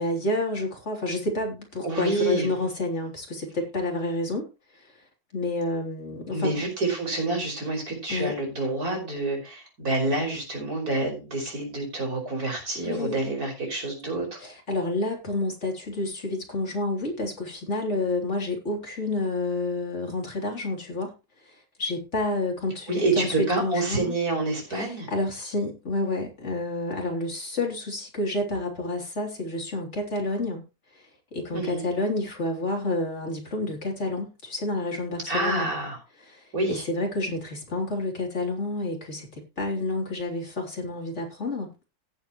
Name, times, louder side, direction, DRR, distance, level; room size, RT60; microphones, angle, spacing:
voice 1, 0.0-4.5 5.3-6.5 8.1-8.4 12.8-13.2 14.4-21.1 21.5-24.2 24.7-30.6 31.3-35.7 36.3-41.7, left 2 dB, 35° left, 3.6 m, -29 dB
voice 2, 1.8-2.5 6.3-14.4 22.9-25.1 31.5-31.9 35.3-36.0 36.5-36.8, right 2 dB, 50° right, 5.6 m, -28 dB
17.0 x 7.8 x 3.1 m
omnidirectional pair, 2.0 m